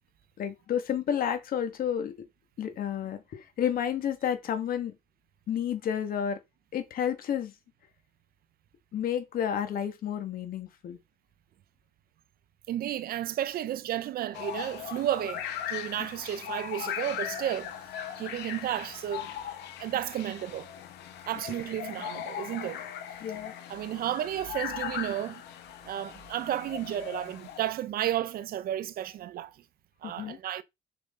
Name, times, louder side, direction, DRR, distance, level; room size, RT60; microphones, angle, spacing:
voice 1, 0.4-2.1 2.6-4.9 5.5-6.4 6.7-7.5 8.9-11.0 23.2-23.5 30.0-30.4, left 9 dB, 60° left, 2.0 m, -31 dB
voice 2, 12.7-17.7 18.2-19.3 19.8-20.7 21.2-22.8 23.7-25.4 25.8-29.6 30.0-30.6, right 12 dB, 65° right, 0.9 m, -32 dB
sound 1, 14.3-27.7, left 10 dB, 80° left, 1.8 m, -39 dB
7.2 x 6.7 x 3.9 m
cardioid pair, 110°, 17 cm